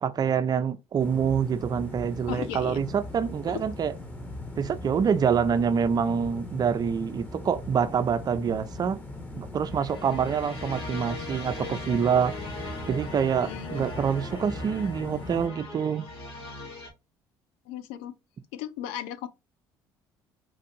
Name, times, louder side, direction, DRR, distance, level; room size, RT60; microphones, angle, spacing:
voice 1, 0.0-3.9 4.6-9.0 9.4-12.3 12.9-16.1, right 7 dB, 40° right, 0.5 m, -26 dB
sound 1, 1.0-15.5, left 1 dB, 15° left, 1.2 m, -40 dB
voice 2, 2.3-2.8 3.5-3.6 13.4-13.9 17.7-18.1 18.5-19.3, left 11 dB, 80° left, 0.5 m, -36 dB
sound 2, 9.6-16.9, left 2 dB, 65° left, 2.6 m, -40 dB
4.6 x 2.5 x 4.2 m
supercardioid pair, 75°, 10 cm